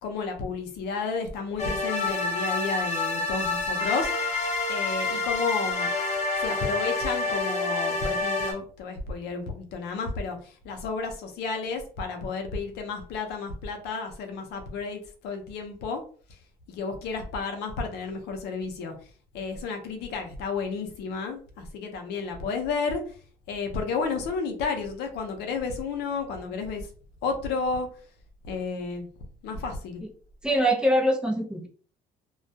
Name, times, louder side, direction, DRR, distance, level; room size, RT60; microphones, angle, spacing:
voice 1, 0.0-4.1 4.7-5.9 6.4-10.4 10.6-16.0 16.7-18.9 19.3-23.0 23.5-26.8 27.2-27.9 28.5-29.1 29.4-30.0, left 4 dB, 80° left, 5 dB, 0.6 m, -31 dB
sound 1, 1.6-8.5, left 3 dB, 40° left, 0.8 m, -28 dB
voice 2, 30.4-31.7, equal, 5° right, 0 dB, 0.5 m, -23 dB
2.2 x 2.2 x 2.7 m, 0.43 s
cardioid pair, 110°, 17 cm